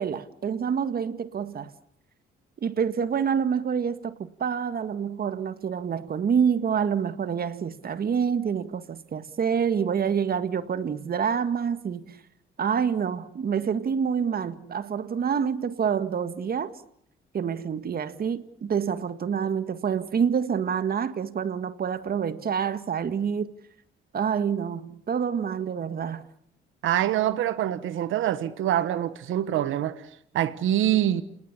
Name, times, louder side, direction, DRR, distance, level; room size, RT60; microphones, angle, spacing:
voice 1, 0.0-1.7 2.6-12.2 12.6-16.8 17.3-23.5 24.1-26.2, right 7 dB, 50° right, 1.9 m, -27 dB
voice 2, 26.8-30.0 30.3-31.2, right 12 dB, 80° right, 1.3 m, -25 dB
28.0 x 19.0 x 8.5 m
cardioid pair, 90°, 20 cm